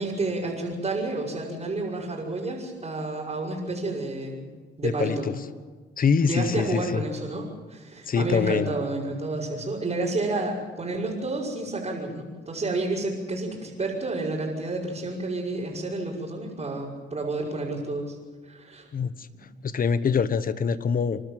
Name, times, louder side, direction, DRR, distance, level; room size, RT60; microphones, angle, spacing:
voice 1, 0.0-4.5 4.8-5.3 6.2-18.2 18.4-18.9, right 2 dB, 30° right, -7 dB, 5.8 m, -30 dB
voice 2, 4.8-5.3 6.0-7.0 8.1-8.7 18.9-19.3 19.6-21.2, left 6 dB, 45° left, 14 dB, 1.3 m, -24 dB
28.5 x 12.0 x 9.2 m, 1.4 s
cardioid pair, 90°, 20 cm